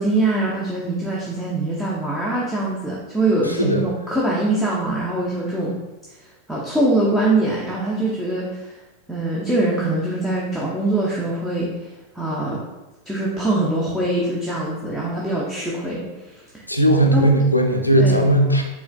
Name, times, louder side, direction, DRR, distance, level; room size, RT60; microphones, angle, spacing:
voice 1, 0.0-5.8 6.5-8.7 9.1-11.7 12.1-12.6 13.1-16.0 17.1-17.3 18.0-18.2, right 2 dB, 5° right, -6 dB, 0.7 m, -23 dB
voice 2, 3.4-3.9 16.7-18.6, right 1 dB, 85° left, 3 dB, 0.5 m, -17 dB
4.6 x 3.3 x 2.2 m, 1.1 s
figure-of-eight pair, 90°, 0 cm